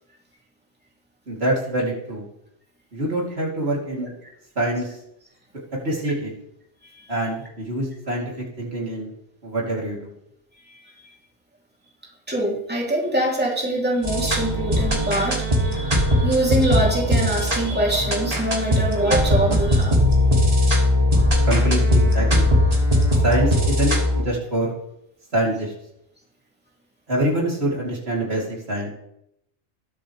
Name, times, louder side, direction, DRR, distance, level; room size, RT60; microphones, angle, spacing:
voice 1, 1.3-2.2 2.9-4.1 4.5-5.0 5.8-6.3 7.1-8.2 8.6-9.1 9.4-10.1 21.5-22.5 23.2-24.7 25.3-25.7 27.1-28.9, right 1 dB, 65° right, -3 dB, 3.3 m, -25 dB
voice 2, 10.7-11.1 12.3-20.0, right 1 dB, 10° right, -3 dB, 3.0 m, -24 dB
sound 1, 14.0-24.2, left 1 dB, 35° right, 2.7 m, -19 dB
20.5 x 7.8 x 3.3 m, 0.76 s
omnidirectional pair, 1.2 m